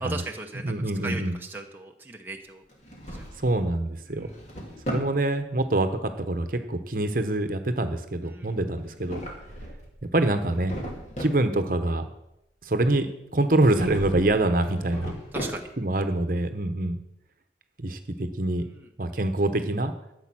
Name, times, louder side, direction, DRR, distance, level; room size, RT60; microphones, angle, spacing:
voice 1, 0.0-0.7 1.0-2.6 3.1-3.2 4.1-4.3 8.2-8.6 15.3-15.7 18.6-18.9, right 2 dB, 10° right, 1 dB, 0.9 m, -37 dB
voice 2, 0.6-1.4 3.4-4.3 4.9-9.2 10.1-10.7 11.2-12.0 12.6-13.1 13.3-15.1 15.8-17.0 17.8-18.6 19.0-19.9, right 2 dB, 50° right, 8 dB, 1.0 m, -25 dB
Drawer open or close, 2.7-3.7 4.1-5.2 8.8-9.9 10.3-11.4 13.6-14.3 14.6-15.9, equal, 40° left, 2.6 m, -36 dB
13.0 x 8.1 x 6.2 m, 0.85 s
head